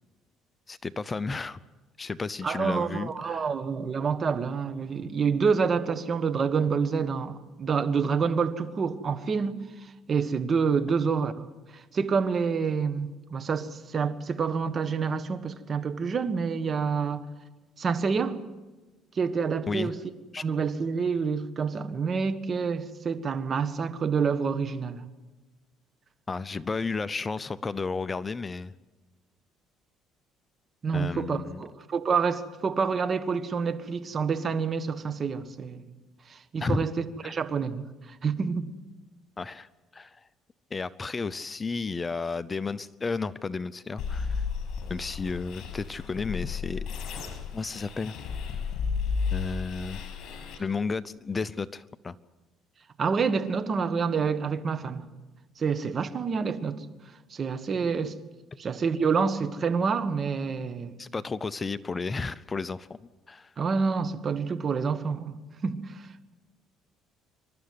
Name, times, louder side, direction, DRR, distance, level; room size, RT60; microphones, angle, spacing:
voice 1, 0.7-1.6 2.0-3.5 19.7-19.9 20.3-20.4 26.3-28.7 30.9-31.6 36.6-36.8 37.2-37.3 39.4-40.2 40.7-44.4 44.9-46.8 47.5-48.1 49.3-50.0 50.6-52.2 61.0-62.9 63.3-63.5, left 4 dB, 25° left, 0.6 m, -32 dB
voice 2, 2.4-9.6 10.1-17.2 17.8-18.4 19.1-19.9 20.4-25.0 30.8-35.8 36.3-38.7 53.0-55.0 55.6-56.8 57.3-58.1 58.6-60.9 63.6-66.0, right 5 dB, 40° right, 1.5 m, -28 dB
sound 1, 44.0-50.6, left 5 dB, 65° left, 6.4 m, -33 dB
27.0 x 13.0 x 9.6 m
cardioid pair, 100°, 0 cm